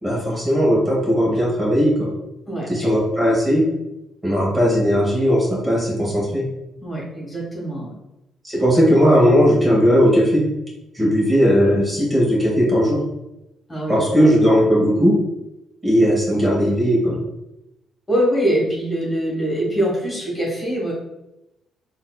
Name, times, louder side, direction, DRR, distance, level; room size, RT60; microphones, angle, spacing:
voice 1, 0.0-2.1 2.7-3.6 4.2-6.4 8.4-10.5 10.9-13.0 13.9-15.2 15.8-17.2, equal, 20° right, -5 dB, 1.3 m, -17 dB
voice 2, 6.8-7.9 13.7-14.3 18.1-20.9, equal, 20° left, -4 dB, 1.4 m, -23 dB
3.9 x 2.6 x 2.2 m, 0.91 s
supercardioid pair, 75°, 0 cm